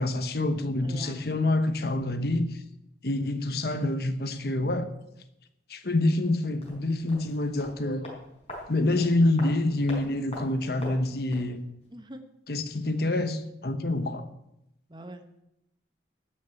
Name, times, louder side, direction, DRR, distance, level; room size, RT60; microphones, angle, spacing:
voice 1, 0.0-2.5 3.0-4.9 5.7-8.1 8.7-11.6 12.5-14.2, left 2 dB, 60° left, 1.0 m, -27 dB
voice 2, 0.8-1.4 11.9-12.2 14.9-15.4, right 1 dB, 25° right, 1.1 m, -44 dB
sound 1, 6.6-11.6 11.8-11.9, left 1 dB, 35° left, 4.7 m, -44 dB
12.5 x 6.6 x 8.7 m
head